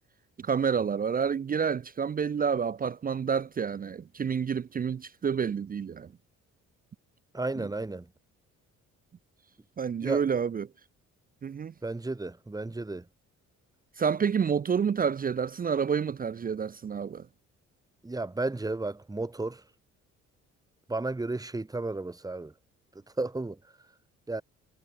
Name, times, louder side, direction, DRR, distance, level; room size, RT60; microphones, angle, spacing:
voice 1, 0.4-6.1 7.6-7.7 9.8-10.7 11.4-11.7 14.0-17.3, right 6 dB, 30° right, 0.5 m, -29 dB
voice 2, 7.3-8.1 10.0-10.2 11.8-13.0 18.0-19.6 20.9-22.5 23.2-23.6 24.3-24.4, right 2 dB, 10° right, 1.4 m, -33 dB
cardioid pair, 90°, 30 cm